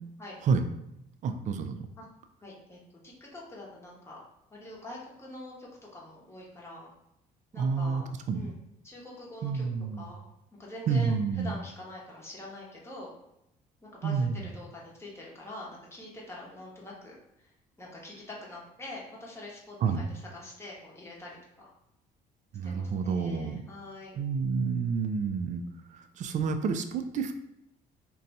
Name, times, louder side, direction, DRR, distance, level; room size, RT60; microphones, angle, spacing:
voice 1, 1.2-1.9 7.6-8.0 8.3-8.5 9.4-10.1 10.9-11.5 14.0-14.4 19.8-20.0 22.5-23.6 24.2-25.6 25.9-27.3, right 5 dB, 45° right, 7 dB, 0.4 m, -29 dB
voice 2, 2.4-2.8 3.0-4.2 4.5-6.9 7.5-8.1 8.3-8.5 8.8-9.6 10.0-10.2 10.6-13.1 13.8-17.5 17.8-21.7 22.6-24.2, left 1 dB, 15° left, -4 dB, 0.9 m, -45 dB
2.6 x 2.3 x 4.0 m, 0.83 s
cardioid pair, 110°, 17 cm